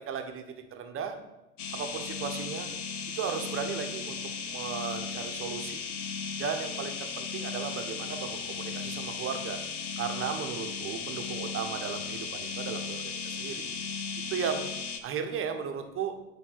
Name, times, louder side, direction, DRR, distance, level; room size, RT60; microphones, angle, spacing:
voice 1, 0.1-0.4 0.7-1.1 1.7-2.7 3.2-4.2 4.5-5.9 6.4-9.6 10.0-13.7 14.3-14.7 15.0-16.1, right 7 dB, 30° right, 6 dB, 1.0 m, -35 dB
sound 1, 1.6-15.0, left 5 dB, 75° left, 0.9 m, -36 dB
7.8 x 3.6 x 6.0 m, 0.97 s
figure-of-eight pair, 80°, 44 cm